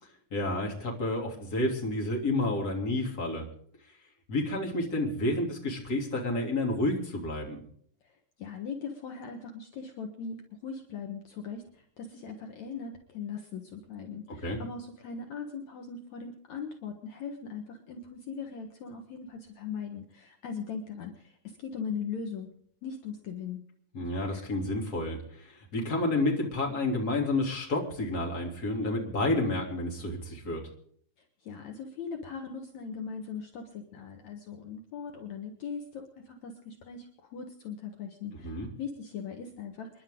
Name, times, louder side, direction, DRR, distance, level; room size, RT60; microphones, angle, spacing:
voice 1, 0.3-3.5 4.3-7.6 14.4-14.6 23.9-30.6 38.4-38.7, left 2 dB, 30° left, -1 dB, 3.4 m, -30 dB
voice 2, 8.4-22.5 22.8-23.6 31.4-40.0, left 6 dB, 65° left, 3 dB, 2.7 m, -40 dB
29.0 x 11.0 x 3.8 m, 0.62 s
omnidirectional pair, 3.6 m